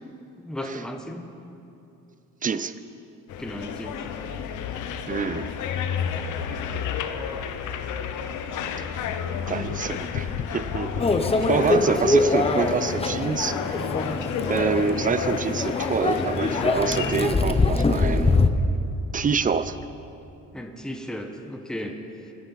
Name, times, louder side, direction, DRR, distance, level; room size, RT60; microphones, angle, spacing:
voice 1, 0.3-1.3 3.4-4.0 11.7-12.0 20.5-22.3, equal, ahead, 3 dB, 1.1 m, -35 dB
voice 2, 2.4-2.7 5.1-5.5 9.5-11.1 11.5-13.8 14.5-18.4 19.1-19.8, right 5 dB, 25° right, 13 dB, 0.5 m, -26 dB
sound 1, 3.3-17.2, left 7 dB, 80° left, 0.9 m, -31 dB
Microwave oven, 11.0-18.5, left 3 dB, 20° left, 0.7 m, -23 dB
17.5 x 10.5 x 4.1 m, 2.7 s
cardioid pair, 90°, 30 cm